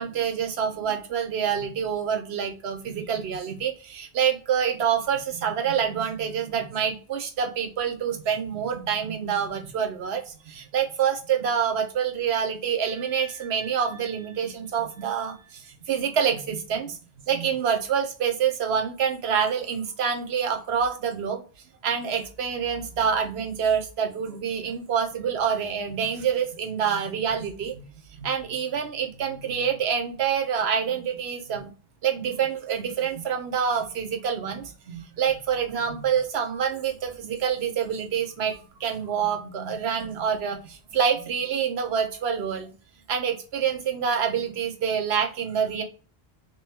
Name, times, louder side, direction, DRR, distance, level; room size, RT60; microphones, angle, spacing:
voice 1, 0.0-17.0 17.3-21.4 21.8-31.7 32.0-42.7 43.1-45.8, right 7 dB, 80° right, 6 dB, 1.0 m, -27 dB
3.4 x 3.0 x 3.4 m, 0.38 s
omnidirectional pair, 1.1 m